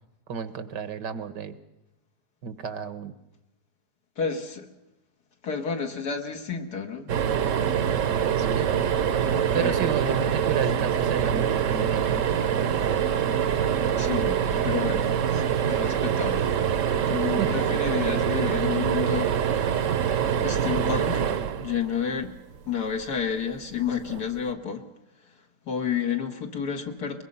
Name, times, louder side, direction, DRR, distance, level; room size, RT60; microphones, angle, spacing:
voice 1, 0.3-1.5 2.4-3.1 8.4-8.7 9.5-12.2 17.4-17.5, right 7 dB, 85° right, 12 dB, 1.9 m, -31 dB
voice 2, 4.2-4.7 5.4-7.2 9.3-9.9 14.0-19.4 20.4-21.3 21.6-22.4 22.7-24.8 25.2-27.2, left 7 dB, 70° left, 4 dB, 2.4 m, -31 dB
sound 1, 7.1-22.4 24.0-24.2 24.5-24.6, right 8 dB, 55° right, 1.1 m, -25 dB
22.5 x 22.0 x 5.5 m, 0.95 s
omnidirectional pair, 1.8 m